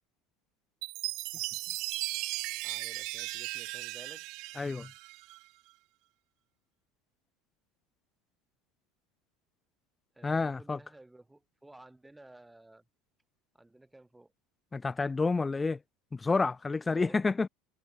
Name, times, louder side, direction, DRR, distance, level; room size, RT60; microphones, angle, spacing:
Chime, 0.8-5.4, right 23 dB, 55° right, 1.4 m, -37 dB
voice 1, 2.6-4.3 10.1-12.8 13.5-14.3 16.9-17.3, right 2 dB, 10° right, 7.4 m, -54 dB
voice 2, 4.6-4.9 10.2-10.8 14.7-15.8 16.1-17.5, left 4 dB, 20° left, 1.3 m, -29 dB
figure-of-eight pair, 70°, 0 cm